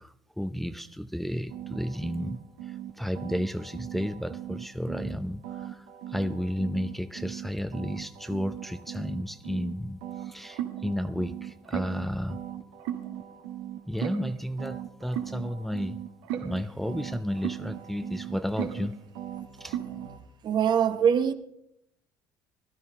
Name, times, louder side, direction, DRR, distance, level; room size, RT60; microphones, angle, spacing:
voice 1, 0.0-12.4 13.9-16.0 16.4-19.0 19.6-19.8, equal, ahead, 0.6 m, -33 dB
sound 1, 1.5-5.2 5.4-9.7 10.0-20.2, right 11 dB, 70° right, 1.4 m, -38 dB
voice 2, 20.4-21.3, right 8 dB, 50° right, 1.0 m, -23 dB
17.0 x 12.5 x 3.7 m
hypercardioid pair, 65°, 10 cm